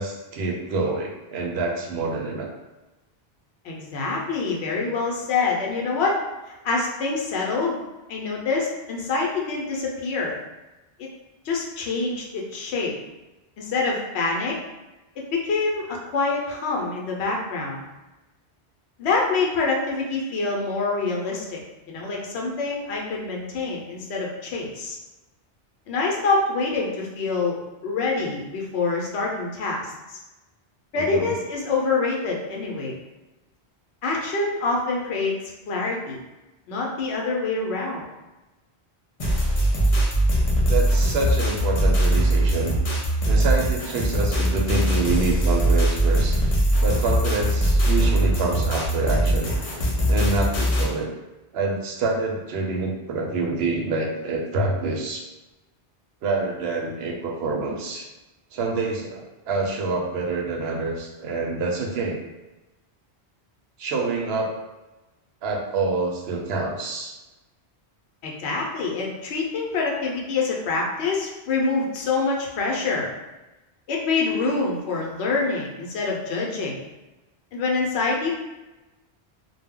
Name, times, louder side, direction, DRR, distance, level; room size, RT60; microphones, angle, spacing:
voice 1, 0.0-2.5 30.9-31.3 40.7-42.7 43.3-46.4 46.8-49.5 50.1-51.1 51.5-55.2 56.2-58.1 58.5-62.2 63.8-64.5 65.4-67.1, right 3 dB, 75° right, -1 dB, 0.8 m, -26 dB
voice 2, 3.6-6.2 6.5-7.8 8.1-10.3 11.0-11.1 11.4-12.9 13.6-14.6 15.2-17.8 19.0-21.6 21.9-25.0 25.9-27.6 27.8-30.2 30.9-33.0 34.0-35.4 35.7-36.2 36.7-38.0 68.2-73.1 73.9-76.8 77.5-78.3, left 3 dB, 80° left, -1 dB, 0.9 m, -26 dB
sound 1, 39.2-50.9, right 1 dB, 45° left, 0.5 m, -21 dB
2.2 x 2.1 x 3.5 m, 1.1 s
omnidirectional pair, 1.1 m